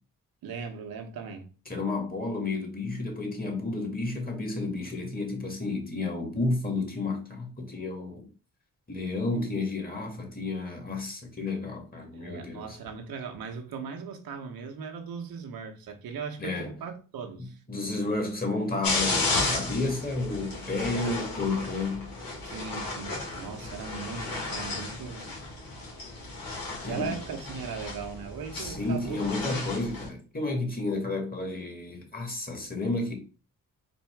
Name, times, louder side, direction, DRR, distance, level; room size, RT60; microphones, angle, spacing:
voice 1, 0.4-1.5 12.1-17.6 22.4-25.4 26.8-29.7, right 6 dB, 85° right, 0.9 m, -38 dB
voice 2, 1.7-8.3 8.9-12.8 16.4-16.7 17.7-22.1 26.8-27.1 28.5-33.1, left 3 dB, 25° left, 1.9 m, -31 dB
sound 1, 18.8-30.1, left 3 dB, 75° left, 1.7 m, -33 dB
4.3 x 2.6 x 4.5 m
cardioid pair, 55°, 35 cm